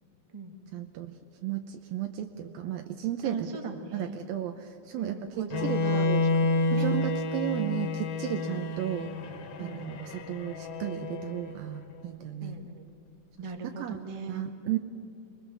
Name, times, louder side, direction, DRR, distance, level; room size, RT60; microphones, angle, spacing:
voice 1, 0.7-6.2 6.7-9.1 9.6-12.6 13.6-14.0 14.3-14.8, right 12 dB, 80° right, 5 dB, 2.6 m, -34 dB
voice 2, 3.2-4.2 4.9-6.9 9.6-9.9 12.4-12.9 13.4-14.4, right 3 dB, 40° right, 3 dB, 0.4 m, -40 dB
Bowed string instrument, 5.5-11.6, left 2 dB, 85° left, 3.3 m, -29 dB
27.0 x 21.5 x 7.1 m, 2.6 s
omnidirectional pair, 4.2 m